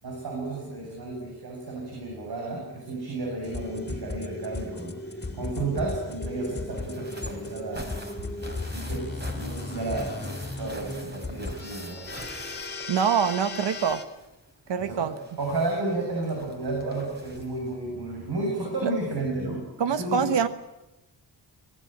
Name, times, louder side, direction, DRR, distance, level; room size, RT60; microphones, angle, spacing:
voice 1, 0.0-7.9 8.7-12.1 14.8-15.1 15.4-20.3, right 2 dB, 60° right, -1 dB, 7.7 m, -32 dB
sound 1, 3.4-14.1, left 2 dB, 25° left, 2.9 m, -36 dB
sound 2, 6.7-13.5 13.7-17.7 18.8-18.9 19.2-19.3, right 1 dB, 25° right, 3.8 m, -44 dB
voice 2, 12.9-14.0 14.7-15.1 18.8-18.9 19.8-20.5, right 7 dB, 80° right, 11 dB, 1.4 m, -24 dB
24.0 x 18.5 x 9.2 m, 0.96 s
wide cardioid pair, 145°, 42 cm